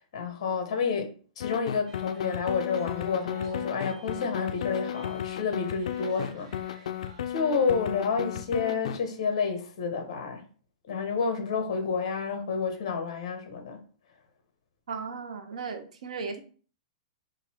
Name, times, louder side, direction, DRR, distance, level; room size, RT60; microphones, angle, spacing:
voice 1, 0.1-6.8 7.3-10.4 10.9-13.8, left 5 dB, 50° left, 1.0 m, -30 dB
sound 1, 1.4-9.0, left 10 dB, 70° left, 0.4 m, -34 dB
sound 2, 1.9-7.2, right 3 dB, 55° right, 1.0 m, -51 dB
voice 2, 14.9-16.4, right 5 dB, 80° right, 0.8 m, -36 dB
3.9 x 2.6 x 4.3 m
supercardioid pair, 175°, 4 cm